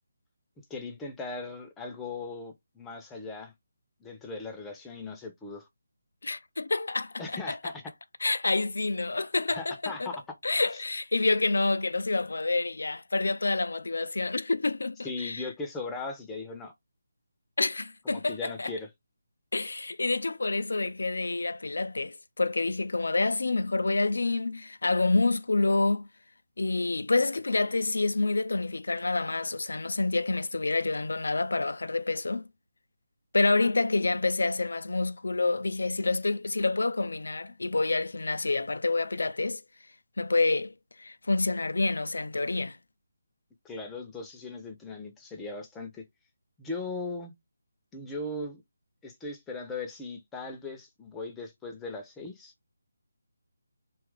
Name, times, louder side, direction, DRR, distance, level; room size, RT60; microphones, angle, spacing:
voice 1, 0.7-3.5 4.0-5.7 7.2-7.8 9.5-10.2 10.7-10.8 15.0-16.7 18.0-18.9 43.6-46.0 46.6-47.3 47.9-48.6 49.0-52.5, left 3 dB, 10° left, 0.6 m, -38 dB
voice 2, 6.2-7.7 8.2-10.1 10.4-15.5 17.6-18.7 19.5-26.1 26.6-32.4 33.3-39.6 40.2-40.7 41.0-42.8, left 3 dB, 75° left, 0.3 m, -28 dB
2.9 x 2.4 x 3.1 m
figure-of-eight pair, 160°, 0 cm